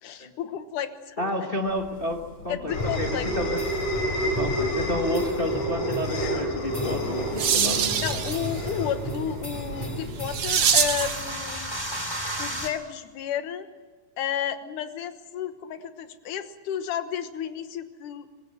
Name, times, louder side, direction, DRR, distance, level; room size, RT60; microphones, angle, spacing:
voice 1, 0.0-1.3 2.5-3.3 8.0-11.7 12.4-13.7 14.2-18.3, left 9 dB, 85° left, 10 dB, 2.7 m, -32 dB
voice 2, 1.2-3.1 3.4-3.6 4.2-7.9, left 1 dB, 40° left, 2 dB, 0.8 m, -30 dB
sound 1, 1.8-10.6, equal, 70° left, 5.0 m, -30 dB
sound 2, 2.7-12.7, equal, 10° left, 2.3 m, -35 dB
sound 3, 6.8-11.3, right 8 dB, 55° right, 2.1 m, -26 dB
24.5 x 20.0 x 7.6 m, 1.4 s
omnidirectional pair, 3.5 m